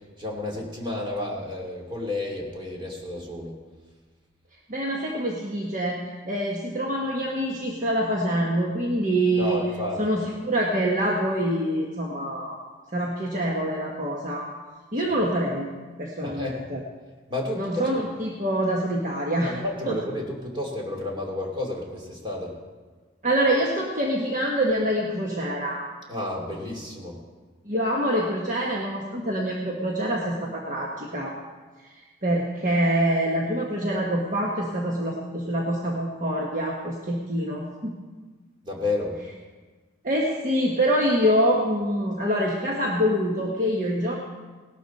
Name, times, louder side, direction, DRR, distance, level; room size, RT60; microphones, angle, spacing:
voice 1, 0.2-3.5 9.4-10.0 15.0-15.1 16.2-16.6 17.3-18.1 19.4-22.5 26.1-27.2 38.6-39.2, left 2 dB, 25° right, -1 dB, 2.6 m, -31 dB
voice 2, 4.7-9.6 10.0-12.6 12.9-14.5 14.9-15.7 16.0-16.8 17.5-19.5 19.9-20.0 23.2-25.9 27.6-31.3 31.8-38.0 40.0-44.1, equal, 40° right, -2 dB, 1.4 m, -25 dB
18.5 x 12.0 x 4.2 m, 1.4 s
head